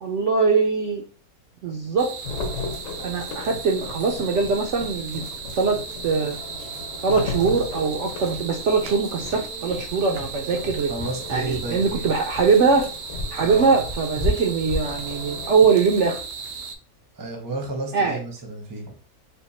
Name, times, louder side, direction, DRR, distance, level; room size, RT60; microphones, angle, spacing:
voice 1, 0.0-1.0 1.6-2.2 3.0-5.2 5.6-5.8 6.0-6.4 7.0-10.9 11.3-12.9 13.3-16.2 17.9-18.2, right 5 dB, 65° right, 2 dB, 0.8 m, -22 dB
sound 1, 2.0-16.8, right 5 dB, 85° right, 1.2 m, -36 dB
sound 2, 2.2-15.7, left 3 dB, 60° left, 1.1 m, -36 dB
sound 3, 6.4-6.5 6.7-6.8 7.1-7.3 7.7-7.8 8.2-16.6, left 1 dB, 35° left, 0.8 m, -34 dB
voice 2, 10.9-12.1 13.4-13.8 17.1-19.0, right 2 dB, 20° right, 2 dB, 0.6 m, -31 dB
3.5 x 2.2 x 4.1 m, 0.37 s
omnidirectional pair, 1.6 m